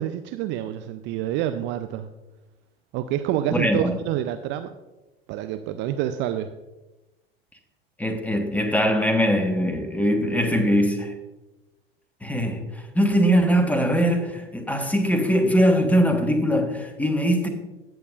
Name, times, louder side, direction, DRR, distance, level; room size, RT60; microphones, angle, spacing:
voice 1, 0.0-2.1 2.9-4.7 5.3-6.5, right 11 dB, 40° right, 9 dB, 0.5 m, -27 dB
voice 2, 3.5-3.9 8.0-11.1 12.2-17.5, equal, 5° left, 5 dB, 1.3 m, -21 dB
16.5 x 6.9 x 2.5 m, 1.1 s
figure-of-eight pair, 75°, 30 cm